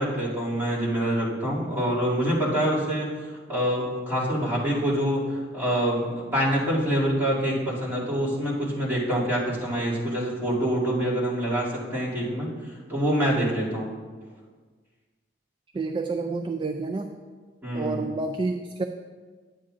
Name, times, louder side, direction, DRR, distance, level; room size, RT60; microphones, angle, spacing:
voice 1, 0.0-12.5 12.9-13.9 17.6-18.0, equal, 15° right, -9 dB, 2.5 m, -26 dB
voice 2, 15.7-17.2 17.7-18.8, right 3 dB, 30° right, 5 dB, 0.3 m, -29 dB
10.0 x 8.4 x 2.5 m, 1.5 s
head